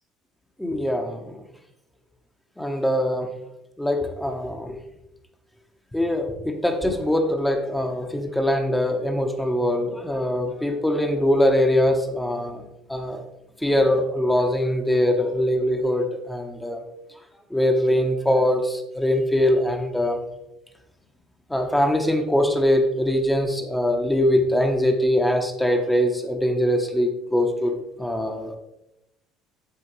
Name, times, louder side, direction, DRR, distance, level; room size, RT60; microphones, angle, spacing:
voice 1, 0.6-1.4 2.6-3.3 3.8-4.8 5.9-12.6 12.9-13.2 13.6-16.8 17.5-20.2 21.5-27.7 28.0-28.6, left 1 dB, 5° left, 4 dB, 1.3 m, -22 dB
13.5 x 4.9 x 3.3 m, 0.86 s
figure-of-eight pair, 60°, 0 cm